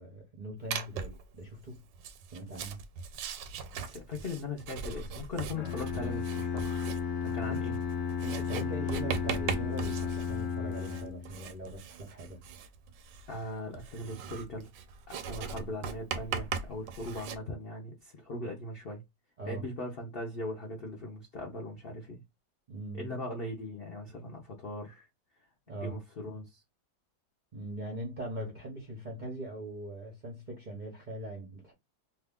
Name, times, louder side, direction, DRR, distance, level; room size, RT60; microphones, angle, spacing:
voice 1, 0.0-1.8 2.3-2.8 5.9-6.1 7.4-7.6 8.2-12.4 15.4-15.7 19.4-19.6 22.7-23.2 25.7-26.0 27.5-31.7, right 1 dB, 50° right, 0.5 m, -41 dB
Writing, 0.7-1.2 1.9-17.4, right 6 dB, 90° right, 1.3 m, -40 dB
voice 2, 3.8-6.8 7.3-7.8 13.3-14.7 15.1-19.0 19.4-22.2 22.9-25.1 25.7-26.6, left 2 dB, 70° left, 0.5 m, -39 dB
Bowed string instrument, 5.5-11.4, left 6 dB, 55° left, 1.0 m, -34 dB
2.8 x 2.4 x 3.5 m
omnidirectional pair, 1.9 m